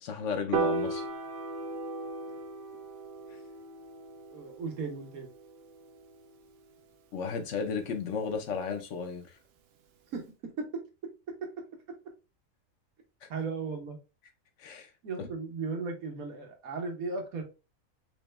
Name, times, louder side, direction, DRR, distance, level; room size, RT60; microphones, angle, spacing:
voice 1, 0.0-1.1 7.1-9.2 14.6-14.9 15.2-15.3, left 5 dB, 60° left, 1.1 m, -34 dB
Piano, 0.5-6.8, right 3 dB, 60° right, 0.7 m, -36 dB
voice 2, 4.3-5.3 10.1-10.2 10.6-10.7 13.3-14.0 15.0-17.4, right 4 dB, 85° right, 1.6 m, -36 dB
4.9 x 3.2 x 2.2 m
omnidirectional pair, 1.5 m